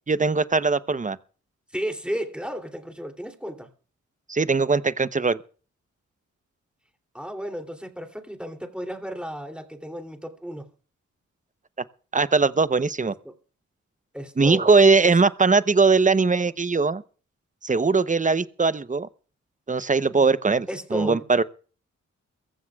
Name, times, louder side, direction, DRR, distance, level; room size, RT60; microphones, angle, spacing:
voice 1, 0.1-1.2 4.3-5.4 12.1-13.1 14.4-17.0 17.6-19.1 19.7-21.4, right 4 dB, 25° right, 0.8 m, -20 dB
voice 2, 1.7-3.7 7.1-10.7 13.2-13.3 14.1-14.8 15.0-15.2 20.7-21.4, equal, 5° right, 2.9 m, -33 dB
23.0 x 15.0 x 2.4 m
cardioid pair, 45°, 31 cm